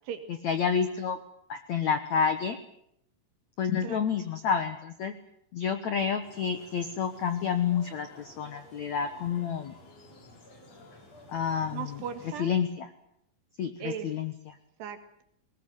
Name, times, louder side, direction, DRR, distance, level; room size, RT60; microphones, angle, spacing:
voice 1, 0.4-1.2 1.5-2.6 3.6-5.1 5.5-9.7 11.3-11.9 12.4-12.9 13.6-14.6, left 7 dB, 70° left, 9 dB, 1.7 m, -29 dB
sound 1, 6.2-12.4, left 1 dB, 40° left, 4.5 m, -52 dB
voice 2, 11.7-12.5 13.8-14.1 14.8-15.2, right 8 dB, 70° right, 7 dB, 4.2 m, -37 dB
20.5 x 20.5 x 9.2 m, 0.73 s
omnidirectional pair, 5.1 m